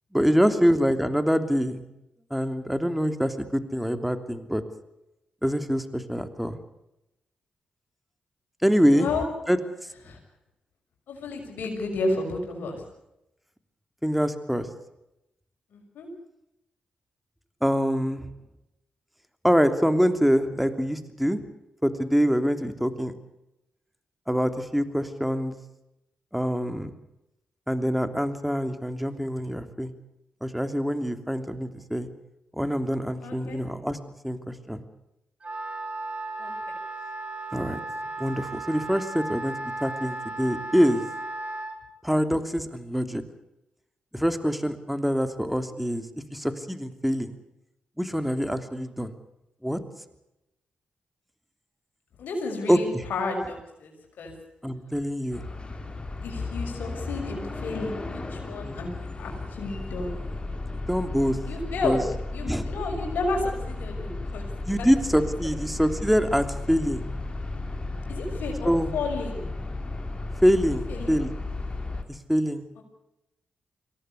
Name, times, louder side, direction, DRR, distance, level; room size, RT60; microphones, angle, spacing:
voice 1, 0.1-1.8 2.3-4.6 5.4-6.6 8.6-9.1 9.5-9.6 14.0-14.7 17.6-18.3 19.4-21.4 21.8-23.1 24.3-25.6 26.3-26.9 27.7-29.9 30.4-32.1 32.5-34.0 34.2-34.8 37.5-37.8 38.2-39.5 39.8-41.0 42.0-43.2 44.1-47.3 48.0-49.1 49.6-49.8 52.7-53.0 54.6-55.4 58.6-58.9 60.9-61.4 61.8-62.0 62.5-62.7 64.7-67.0 68.6-68.9 70.4-71.3 72.1-72.7, equal, ahead, 8 dB, 3.1 m, -25 dB
voice 2, 8.9-9.2 10.1-10.2 11.1-12.9 15.7-16.1 33.2-33.6 36.4-36.5 52.2-54.3 56.2-60.2 61.5-62.0 62.3-64.4 64.8-64.9 68.1-69.4 70.9-71.2 72.8-72.9, left 3 dB, 75° left, 2 dB, 6.2 m, -32 dB
Wind instrument woodwind instrument, 35.4-41.8, right 2 dB, 40° right, 3.8 m, -35 dB
sound 1, 55.3-72.0, left 2 dB, 30° left, 3.8 m, -34 dB
23.5 x 17.5 x 8.4 m, 0.89 s
hypercardioid pair, 40°, 3 cm